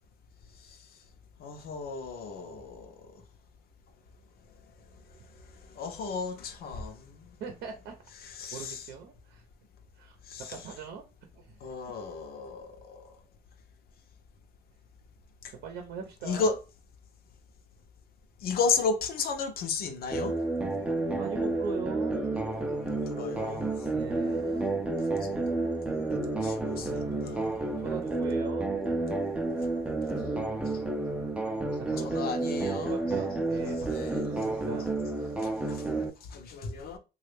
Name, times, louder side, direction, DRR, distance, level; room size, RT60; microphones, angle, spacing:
voice 1, 1.4-3.1 5.7-7.3 8.2-8.9 10.3-10.6 11.6-13.2 16.2-16.6 18.4-20.3 22.9-23.7 25.1-27.6 32.0-33.0 33.7-34.2 35.4-36.0 36.3-37.0, left 5 dB, 65° left, 0.7 m, -34 dB
voice 2, 7.4-7.9 8.5-9.4 10.0-10.2 10.5-11.0 11.3-11.7 15.5-16.5 21.2-22.3 23.9-24.6 26.8-28.8 31.8-34.9, right 6 dB, 75° right, 0.7 m, -41 dB
sound 1, 20.1-36.1, right 2 dB, 5° right, 0.4 m, -30 dB
3.2 x 2.4 x 3.3 m
cardioid pair, 110°, 17 cm